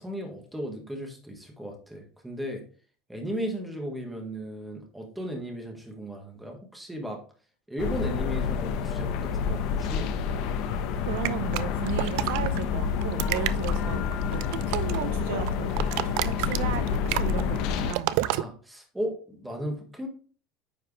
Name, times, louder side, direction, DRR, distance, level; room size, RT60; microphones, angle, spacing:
voice 1, 0.0-2.6 3.1-7.2 7.7-10.1 13.4-13.5 18.2-20.1, equal, 5° right, 2 dB, 1.6 m, -35 dB
sound 1, 7.8-17.9, left 7 dB, 55° left, 1.0 m, -28 dB
voice 2, 11.1-14.1 14.3-18.2, right 10 dB, 75° right, 11 dB, 0.8 m, -35 dB
sound 2, 11.2-12.6 13.0-15.1 15.4-18.4, right 15 dB, 60° right, 0.4 m, -30 dB
9.4 x 4.9 x 3.3 m, 0.41 s
cardioid pair, 170°, 0 cm